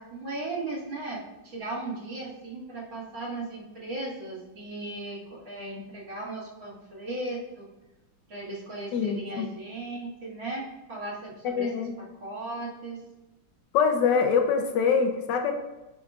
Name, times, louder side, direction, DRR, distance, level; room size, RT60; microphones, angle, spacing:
voice 1, 0.0-7.7 8.3-13.0, right 2 dB, 65° right, -5 dB, 2.6 m, -37 dB
voice 2, 8.9-9.4 11.4-11.9 13.7-15.6, left 6 dB, 70° left, 5 dB, 1.2 m, -24 dB
8.8 x 5.0 x 2.4 m, 1.0 s
omnidirectional pair, 2.3 m